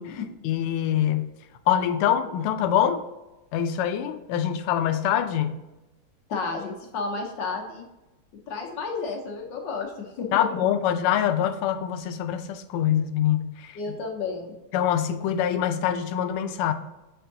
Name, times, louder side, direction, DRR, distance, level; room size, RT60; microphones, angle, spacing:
voice 1, 0.0-1.3 1.7-3.0 3.5-5.6 10.3-13.8 14.7-16.7, left 10 dB, 90° left, 9 dB, 1.5 m, -24 dB
voice 2, 6.3-7.8 8.5-10.6 13.7-14.5, left 4 dB, 65° left, 2 dB, 1.3 m, -32 dB
8.0 x 4.5 x 2.6 m, 1.0 s
omnidirectional pair, 2.4 m